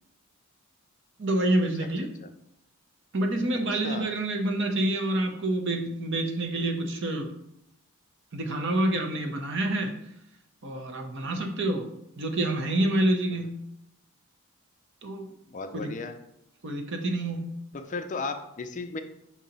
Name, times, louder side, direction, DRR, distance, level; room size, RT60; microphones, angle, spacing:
voice 1, 1.2-2.1 3.1-7.3 8.3-9.9 10.6-11.9 12.2-13.5 15.0-15.3 15.7-15.9 16.6-17.5, right 1 dB, 55° right, 4 dB, 0.8 m, -27 dB
voice 2, 3.7-4.1 11.3-11.4 15.5-16.2 17.7-19.0, left 3 dB, 35° left, 7 dB, 0.4 m, -35 dB
6.1 x 2.9 x 5.2 m, 0.79 s
head